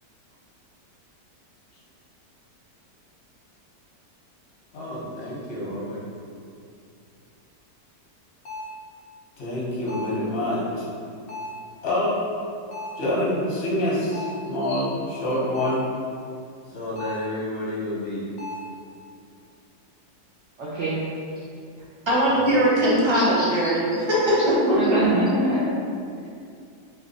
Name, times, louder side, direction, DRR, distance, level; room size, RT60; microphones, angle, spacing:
voice 1, 4.7-6.0 9.4-10.9 11.8-12.2 13.0-15.9 16.7-18.3 22.3-22.4, left 1 dB, 45° left, -6 dB, 1.2 m, -27 dB
sound 1, 8.5-8.8 9.9-10.3 11.3-11.7 12.7-13.1 14.1-14.5 15.5-15.9 17.0-17.4 18.4-18.7, left 1 dB, 75° left, 0.5 m, -36 dB
voice 2, 20.6-21.0 23.1-23.7 24.8-25.6, right 1 dB, 60° right, -7 dB, 0.8 m, -26 dB
voice 3, 22.1-25.0, equal, 25° right, -8 dB, 0.7 m, -20 dB
3.4 x 3.3 x 4.0 m, 2.4 s
omnidirectional pair, 1.8 m